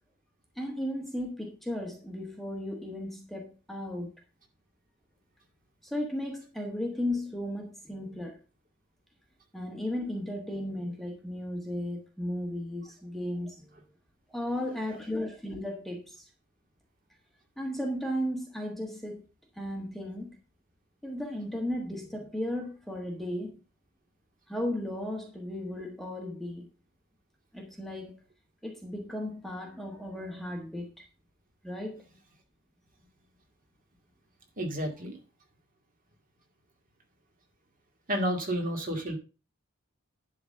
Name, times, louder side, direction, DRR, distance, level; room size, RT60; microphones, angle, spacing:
voice 1, 0.5-4.1 5.8-8.4 9.5-13.9 14.3-16.3 17.6-19.3 19.5-20.4 21.0-23.6 24.5-26.7 27.5-28.2 28.6-31.1 31.6-32.0, left 1 dB, ahead, 1.3 m, -35 dB
voice 2, 34.6-35.2 38.1-39.1, equal, 40° right, 2.3 m, -30 dB
11.0 x 4.0 x 6.6 m
head